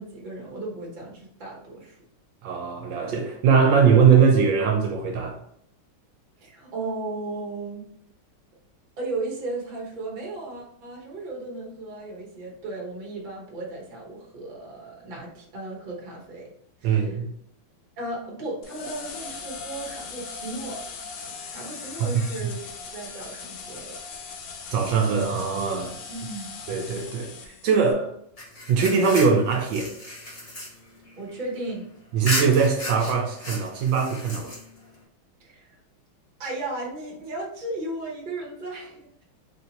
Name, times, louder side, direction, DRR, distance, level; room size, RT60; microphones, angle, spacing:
voice 1, 0.0-2.0 6.4-7.8 9.0-16.5 16.8-17.2 18.0-20.8 21.2-24.0 26.1-26.5 31.2-31.9 35.4-35.8 36.4-39.2, right 2 dB, 35° right, 0.8 m, -35 dB
voice 2, 2.4-5.4 16.8-17.3 22.0-22.5 24.7-25.9 26.7-28.1 28.7-29.9 32.1-34.5, right 6 dB, 75° right, 1.2 m, -21 dB
sound 1, 18.6-27.9, left 5 dB, 75° left, 1.2 m, -39 dB
sound 2, 28.4-31.8 32.2-34.9, left 1 dB, 35° left, 0.5 m, -34 dB
3.8 x 2.7 x 2.8 m
omnidirectional pair, 2.2 m